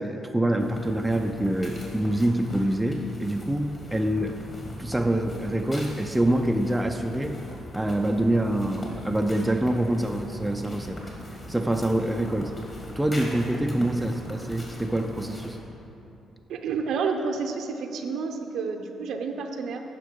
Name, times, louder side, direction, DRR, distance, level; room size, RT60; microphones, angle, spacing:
voice 1, 0.0-4.4 4.8-7.4 7.7-11.0 11.5-12.5 13.0-15.6, right 1 dB, 10° right, 4 dB, 0.4 m, -25 dB
sound 1, 0.6-15.6, left 1 dB, 30° left, 1.9 m, -40 dB
voice 2, 16.5-19.8, right 5 dB, 75° right, 4 dB, 0.7 m, -30 dB
9.6 x 5.8 x 5.1 m, 2.9 s
cardioid pair, 90°, 0 cm